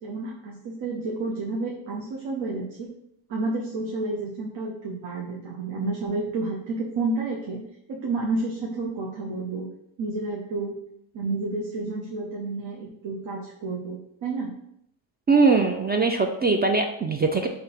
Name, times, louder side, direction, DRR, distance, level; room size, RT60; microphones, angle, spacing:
voice 1, 0.0-2.9 3.3-9.7 10.0-10.7 11.1-14.5, right 3 dB, 65° right, -1 dB, 0.9 m, -30 dB
voice 2, 15.3-17.5, right 4 dB, 25° right, 4 dB, 0.3 m, -21 dB
3.7 x 2.9 x 4.3 m, 0.74 s
cardioid pair, 90°, 48 cm